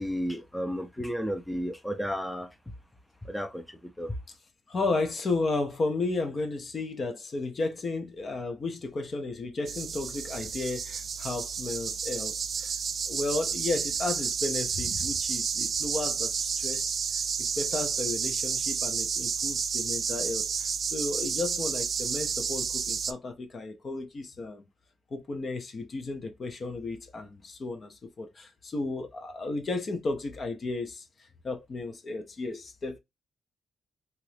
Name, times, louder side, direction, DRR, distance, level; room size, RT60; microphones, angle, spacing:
voice 1, 0.0-2.5 3.3-4.1, equal, 5° left, 0.5 m, -33 dB
voice 2, 4.7-12.7 13.1-17.0 17.4-24.7 25.1-31.0 31.4-33.0, left 3 dB, 45° left, 0.7 m, -33 dB
sound 1, 9.7-23.1, right 6 dB, 55° right, 0.3 m, -31 dB
2.9 x 2.5 x 3.2 m
cardioid pair, 100°, 0 cm